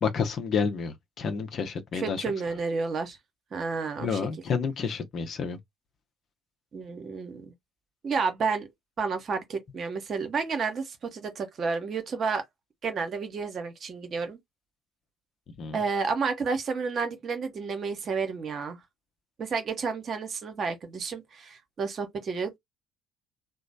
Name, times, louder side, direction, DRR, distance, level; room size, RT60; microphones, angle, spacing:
voice 1, 0.0-2.2 4.0-5.6 15.6-15.8, left 6 dB, 45° left, 0.8 m, -29 dB
voice 2, 2.0-3.2 3.5-4.2 6.7-7.5 8.0-8.7 9.0-12.4 12.8-14.4 15.7-18.8 19.4-22.6, right 5 dB, 40° right, 1.0 m, -31 dB
3.1 x 2.1 x 3.9 m
figure-of-eight pair, 55°, 0 cm